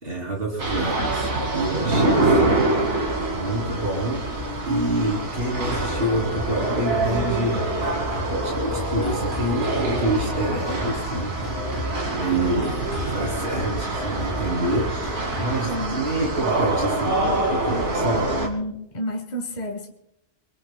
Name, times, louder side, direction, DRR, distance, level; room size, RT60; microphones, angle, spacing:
voice 1, 0.0-2.6 3.3-4.2 4.6-7.6 8.3-11.4 12.1-14.9 15.4-18.3, right 1 dB, 55° right, -2 dB, 3.3 m, -27 dB
sound 1, 0.6-18.5, right 2 dB, 85° right, 2.5 m, -25 dB
sound 2, 5.6-15.4, equal, 25° left, 2.1 m, -35 dB
voice 2, 15.6-16.0 18.1-19.9, equal, 40° left, 3 dB, 1.4 m, -31 dB
24.5 x 23.0 x 2.2 m, 0.80 s
omnidirectional pair, 1.1 m